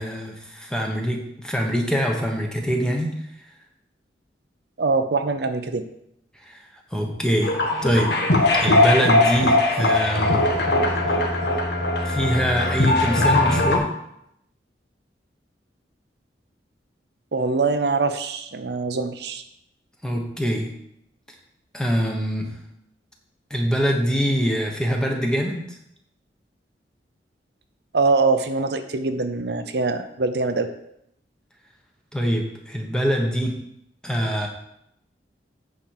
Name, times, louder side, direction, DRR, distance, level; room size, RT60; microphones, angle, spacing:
voice 1, 0.0-3.1 6.4-6.6 6.9-7.6 7.8-8.1 8.6-10.4 12.0-13.9 20.0-20.7 21.7-22.5 23.5-25.8 32.1-33.6 34.0-34.5, equal, 5° left, 1 dB, 1.1 m, -24 dB
voice 2, 4.8-5.8 17.3-19.4 27.9-30.7, right 3 dB, 65° right, 8 dB, 0.6 m, -23 dB
sound 1, 7.4-13.8, left 2 dB, 65° left, 1.5 m, -20 dB
9.2 x 4.4 x 6.6 m, 0.77 s
head